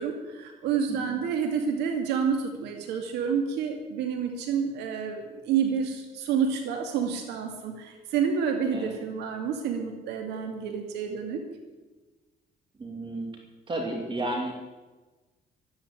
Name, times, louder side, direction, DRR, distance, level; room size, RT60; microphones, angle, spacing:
voice 1, 0.0-11.4, right 6 dB, 85° right, 4 dB, 2.3 m, -29 dB
voice 2, 12.8-13.3 13.7-14.5, right 1 dB, 30° right, 1 dB, 2.8 m, -32 dB
13.5 x 11.0 x 8.8 m, 1.2 s
cardioid pair, 110°, 17 cm